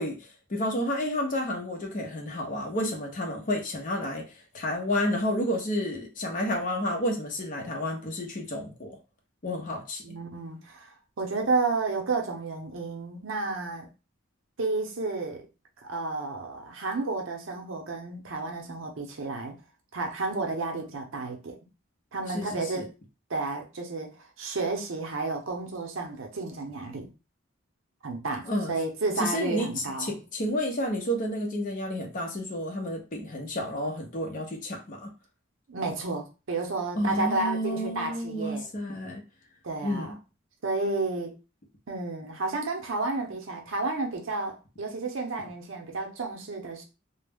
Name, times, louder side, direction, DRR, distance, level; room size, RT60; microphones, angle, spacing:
voice 1, 0.0-9.0 9.4-10.2 22.3-22.8 28.5-28.7 29.2-35.1 37.0-39.2 39.8-40.2, left 1 dB, 45° left, 0.6 m, -31 dB
voice 2, 10.0-10.9 11.2-13.9 14.6-15.5 15.8-19.6 19.9-21.6 22.1-22.9 23.3-27.1 28.0-30.2 35.7-38.7 39.6-40.1 40.6-41.4 41.9-46.8, right 3 dB, 75° right, 0.6 m, -31 dB
2.2 x 2.0 x 3.3 m
head